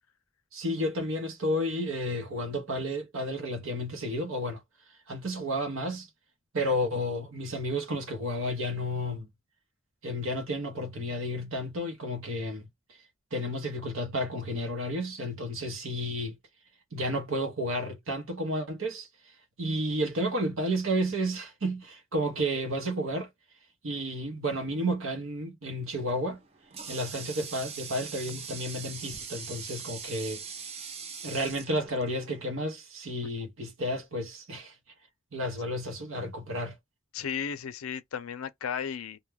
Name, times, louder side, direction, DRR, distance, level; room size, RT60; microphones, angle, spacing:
voice 1, 0.5-4.6 5.1-6.1 6.5-9.3 10.0-12.7 13.3-16.4 16.9-19.1 19.6-23.3 23.8-26.4 26.9-30.4 31.2-34.7 35.3-36.7, equal, 70° right, 0.8 m, -31 dB
Water tap faucet, 26.1-32.6, right 6 dB, 30° right, 0.5 m, -42 dB
voice 2, 37.1-39.2, left 7 dB, 90° left, 0.4 m, -34 dB
2.2 x 2.1 x 3.3 m
head